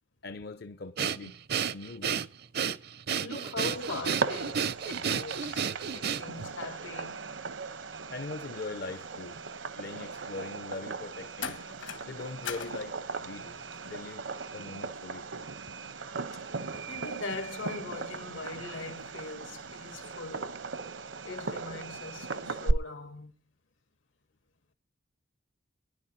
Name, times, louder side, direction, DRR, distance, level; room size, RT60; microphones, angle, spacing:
voice 1, 0.2-1.4 1.7-2.2 8.1-9.4 9.8-11.6 12.0-14.2 14.5-15.3 15.8-15.9, left 3 dB, 55° left, 0.6 m, -41 dB
Breathing, 1.0-6.5, right 7 dB, 55° right, 0.6 m, -32 dB
voice 2, 3.2-7.2 16.3-16.4 16.9-20.7 21.2-23.3, left 3 dB, 85° left, 2.0 m, -41 dB
Fireworks, 3.7-22.7, right 3 dB, 75° right, 0.9 m, -38 dB
sound 1, 8.9-9.3 11.4-12.1 12.4-12.8 13.7-13.9, left 7 dB, 70° left, 1.5 m, -39 dB
23.5 x 11.0 x 2.8 m
head